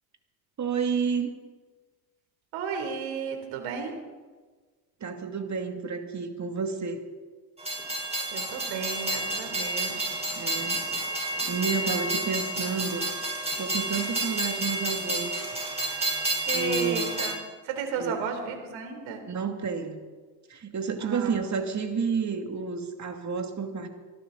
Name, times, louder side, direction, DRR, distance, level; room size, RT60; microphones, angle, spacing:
voice 1, 0.6-1.3 5.0-7.0 10.4-10.8 11.5-13.1 13.6-15.3 16.5-17.2 18.0-18.2 19.3-20.0 20.5-23.9, right 5 dB, 35° right, 5 dB, 2.5 m, -30 dB
voice 2, 2.5-3.9 8.3-10.1 16.5-19.2 21.0-21.3, right 6 dB, 65° right, 5 dB, 3.5 m, -34 dB
Train, 7.6-17.3, right 1 dB, 10° right, 4.5 m, -30 dB
24.0 x 12.0 x 4.0 m, 1.4 s
hypercardioid pair, 75°, 49 cm